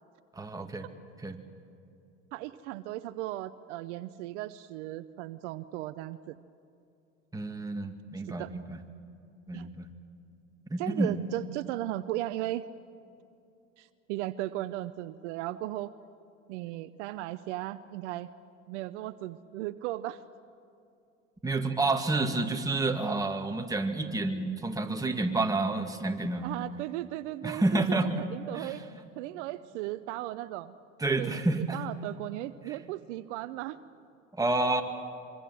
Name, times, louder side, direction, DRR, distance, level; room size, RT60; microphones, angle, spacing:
voice 1, 0.4-0.9 1.2-1.4 7.3-8.8 9.5-9.9 10.7-11.2 21.4-26.5 27.4-28.2 28.5-28.7 31.0-31.8 34.3-34.8, right 2 dB, 10° right, 3 dB, 2.3 m, -29 dB
voice 2, 2.3-6.4 8.2-8.5 9.5-9.7 10.8-12.7 13.8-15.9 16.5-18.3 18.7-20.2 26.4-28.8 29.2-30.7 31.2-33.8, right 15 dB, 65° right, 14 dB, 0.8 m, -36 dB
25.5 x 23.5 x 7.6 m, 2.6 s
hypercardioid pair, 80°, 38 cm